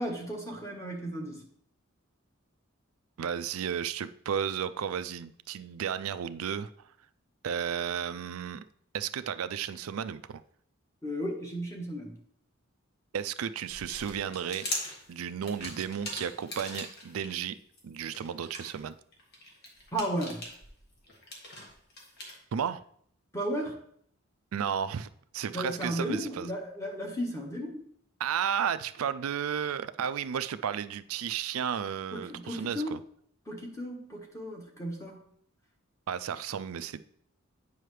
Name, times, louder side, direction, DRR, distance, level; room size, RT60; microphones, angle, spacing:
voice 1, 0.0-1.4 11.0-12.2 19.9-20.4 23.3-23.8 25.5-27.8 32.1-32.9 33.5-35.2, equal, 15° left, 1.4 m, -34 dB
voice 2, 3.2-6.7 7.4-8.6 8.9-10.4 13.1-14.7 15.1-17.6 17.8-18.9 22.5-22.8 24.5-25.1 25.3-26.5 28.2-33.0 36.1-37.0, right 8 dB, 80° right, 0.4 m, -33 dB
sound 1, 13.7-17.3 17.7-22.4, left 1 dB, 50° left, 1.8 m, -41 dB
9.2 x 5.5 x 3.3 m
head